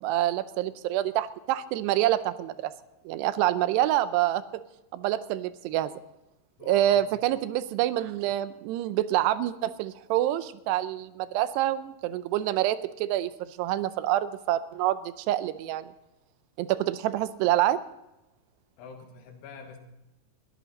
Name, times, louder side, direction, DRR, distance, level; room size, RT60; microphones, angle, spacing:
voice 1, 0.0-2.7 3.1-4.4 4.9-5.9 6.7-15.9 16.6-17.8, right 13 dB, 85° right, 14 dB, 2.8 m, -27 dB
voice 2, 6.6-7.1 18.8-19.8, left 4 dB, 85° left, 4 dB, 3.7 m, -44 dB
21.0 x 13.5 x 4.1 m, 0.94 s
omnidirectional pair, 4.7 m